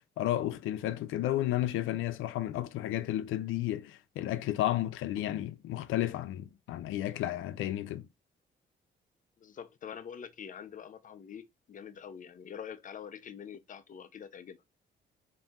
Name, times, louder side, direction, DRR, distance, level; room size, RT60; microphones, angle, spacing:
voice 1, 0.0-8.1, left 13 dB, 85° left, 0.5 m, -32 dB
voice 2, 9.4-14.6, left 8 dB, 40° left, 0.5 m, -45 dB
4.1 x 2.6 x 3.5 m
cardioid pair, 90°, 20 cm